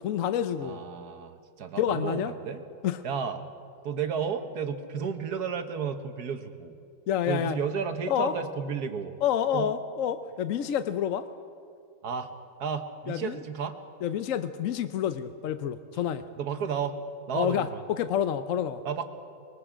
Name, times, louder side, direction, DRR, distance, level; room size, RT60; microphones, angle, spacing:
voice 1, 0.0-0.8 1.8-2.3 2.8-3.0 7.1-7.6 8.1-8.3 9.2-11.3 13.1-13.4 14.0-16.2 17.3-18.8, left 9 dB, 65° left, 11 dB, 0.8 m, -28 dB
voice 2, 0.6-2.6 3.0-3.5 3.8-6.8 7.3-9.2 9.4-9.7 12.0-12.3 12.6-13.8 16.4-17.0 17.3-17.8 18.8-19.0, right 6 dB, 65° right, 8 dB, 1.5 m, -32 dB
24.0 x 22.0 x 5.0 m, 2.4 s
omnidirectional pair, 1.9 m